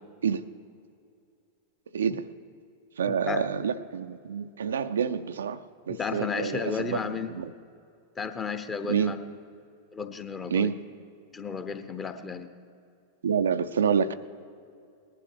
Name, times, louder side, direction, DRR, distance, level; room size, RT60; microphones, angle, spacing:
voice 1, 1.9-2.2 3.0-5.6 5.9-7.5 8.9-9.1 10.5-10.8 13.2-14.1, right 7 dB, 65° right, 10 dB, 0.4 m, -27 dB
voice 2, 3.0-3.4 5.9-7.3 8.2-9.2 9.9-10.7 11.3-12.5, left 5 dB, 20° left, 9 dB, 0.9 m, -33 dB
19.0 x 11.5 x 4.9 m, 2.5 s
figure-of-eight pair, 90°, 0 cm